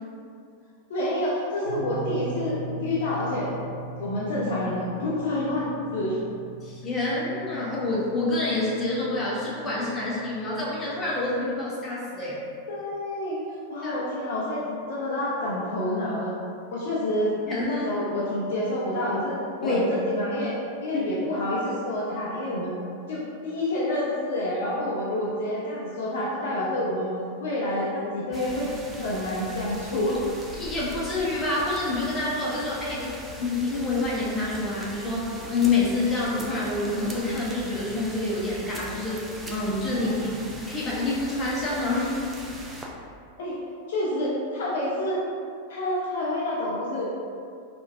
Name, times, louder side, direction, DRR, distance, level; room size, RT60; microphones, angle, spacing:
voice 1, 0.9-3.5 4.0-6.2 12.7-13.4 13.7-16.3 16.7-17.4 17.6-22.7 23.1-27.1 27.4-30.2 39.9-40.1 43.4-43.6 43.9-45.2 45.7-47.1, left 1 dB, 55° left, -6 dB, 0.5 m, -28 dB
sound 1, 1.6-11.4, right 3 dB, 75° right, 1.0 m, -40 dB
voice 2, 6.6-12.4 13.8-13.9 17.5-17.8 19.6-19.8 20.9-21.0 30.5-33.1 33.4-39.2 39.5-40.4 40.7-42.2, left 2 dB, 20° left, -7 dB, 0.9 m, -27 dB
sound 2, 28.3-42.9, right 1 dB, 10° right, 0.4 m, -40 dB
3.7 x 2.4 x 2.6 m, 2.4 s
figure-of-eight pair, 90°, 0 cm